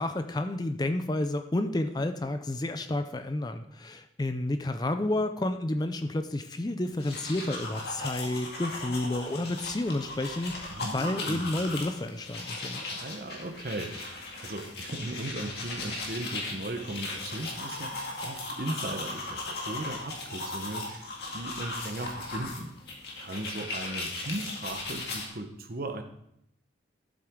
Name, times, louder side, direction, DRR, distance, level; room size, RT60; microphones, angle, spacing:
voice 1, 0.0-12.8, left 1 dB, 20° left, 8 dB, 0.4 m, -30 dB
sound 1, 6.9-25.3, left 2 dB, 55° left, 2.0 m, -37 dB
voice 2, 10.7-11.5 12.9-22.7 23.2-26.0, right 2 dB, 50° right, 6 dB, 1.0 m, -37 dB
12.0 x 7.6 x 3.7 m, 0.75 s
head